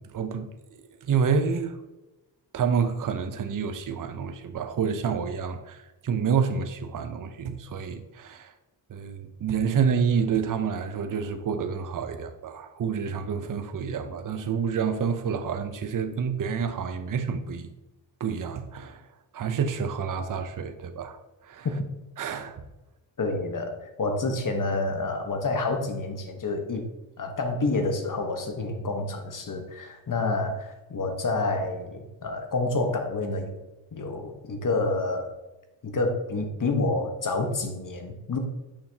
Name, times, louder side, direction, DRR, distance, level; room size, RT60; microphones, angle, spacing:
voice 1, 0.0-1.8 2.5-8.5 8.9-17.7 18.2-19.1 19.3-21.7 22.2-22.6, right 6 dB, 45° right, 0.7 m, -28 dB
voice 2, 23.2-26.9 27.2-33.6 33.9-35.3 35.8-38.4, left 3 dB, 45° left, 1.3 m, -28 dB
6.6 x 5.7 x 2.9 m
cardioid pair, 65°, 46 cm